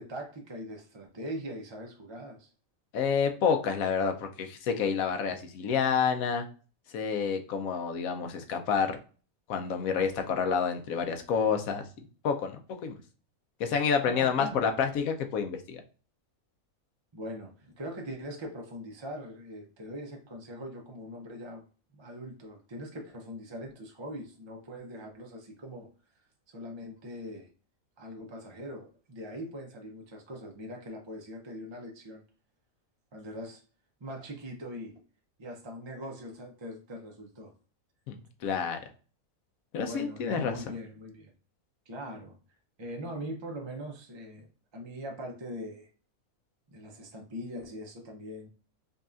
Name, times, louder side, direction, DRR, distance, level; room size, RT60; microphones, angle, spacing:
voice 1, 0.0-2.5 14.0-14.7 17.1-21.6 21.9-25.9 26.5-27.5 28.0-32.2 33.1-33.6 34.0-34.9 35.4-37.5 39.8-41.3 41.9-42.4 42.8-45.9 46.7-48.5, equal, 40° right, 0.4 m, -41 dB
voice 2, 2.9-6.5 6.9-9.0 9.5-11.8 12.2-13.0 13.6-15.8 38.1-38.2 38.4-38.8 39.7-40.6, left 6 dB, 80° left, 1.1 m, -28 dB
5.2 x 2.4 x 2.5 m
omnidirectional pair, 1.5 m